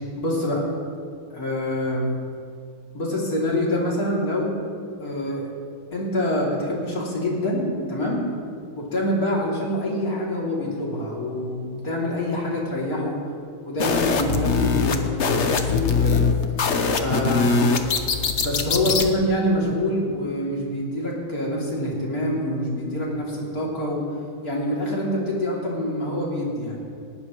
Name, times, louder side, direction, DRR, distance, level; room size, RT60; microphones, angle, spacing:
voice 1, 0.2-0.6 1.3-2.1 2.9-4.5 5.0-5.5 5.9-8.2 8.8-13.2 13.6-16.2 17.0-17.6 18.4-24.0 24.4-26.8, left 1 dB, 40° left, -4 dB, 3.4 m, -25 dB
sound 1, 13.8-19.1, left 5 dB, 55° left, 0.7 m, -22 dB
19.5 x 17.5 x 3.1 m, 2.3 s
omnidirectional pair, 2.4 m